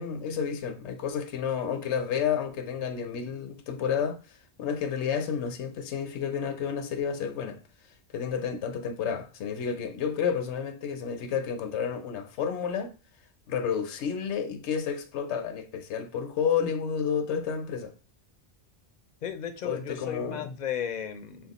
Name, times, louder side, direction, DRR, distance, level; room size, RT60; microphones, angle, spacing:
voice 1, 0.0-4.2 4.6-7.6 8.1-12.9 13.5-17.9 19.6-20.5, left 7 dB, 85° left, 0.9 m, -30 dB
voice 2, 19.2-21.5, left 8 dB, 55° left, 0.5 m, -34 dB
4.2 x 2.3 x 4.0 m
omnidirectional pair, 1.1 m